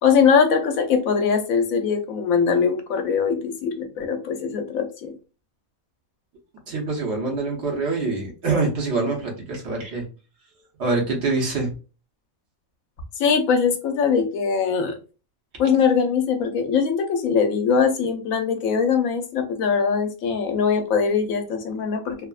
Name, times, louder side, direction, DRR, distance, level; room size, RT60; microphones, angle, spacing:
voice 1, 0.0-5.1 13.2-15.0 15.6-22.2, left 6 dB, 85° left, 6 dB, 1.0 m, -21 dB
voice 2, 6.7-10.0 10.8-11.7, right 3 dB, 55° right, 0 dB, 1.1 m, -25 dB
3.4 x 2.0 x 2.3 m, 0.34 s
omnidirectional pair, 1.4 m